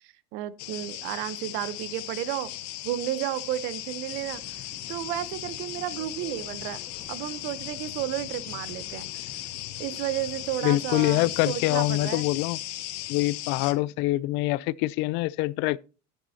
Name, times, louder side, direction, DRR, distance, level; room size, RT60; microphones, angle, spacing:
voice 1, 0.0-2.5 2.8-4.6 4.9-6.8 7.1-9.1 9.8-12.3, right 13 dB, 65° right, 0.9 m, -32 dB
sound 1, 0.6-13.7, left 15 dB, 80° left, 1.2 m, -37 dB
sound 2, 4.1-12.1, left 8 dB, 30° left, 0.8 m, -51 dB
voice 2, 10.6-12.6 13.1-15.8, left 18 dB, 60° left, 0.4 m, -25 dB
12.0 x 9.2 x 2.8 m
supercardioid pair, 110°, 21 cm